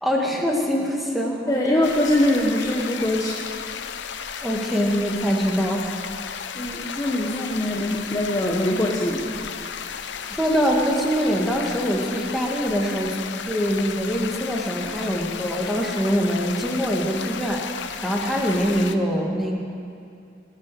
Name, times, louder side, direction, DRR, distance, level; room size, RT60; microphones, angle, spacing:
voice 1, 0.0-1.8 4.4-5.9 10.3-13.2 13.5-19.6, equal, ahead, -1 dB, 1.8 m, -24 dB
voice 2, 1.5-3.4 4.1-4.3 6.5-9.4, left 1 dB, 20° left, -2 dB, 1.1 m, -23 dB
sound 1, 1.8-19.0, left 7 dB, 80° left, 0.7 m, -34 dB
20.0 x 9.6 x 6.8 m, 2.5 s
head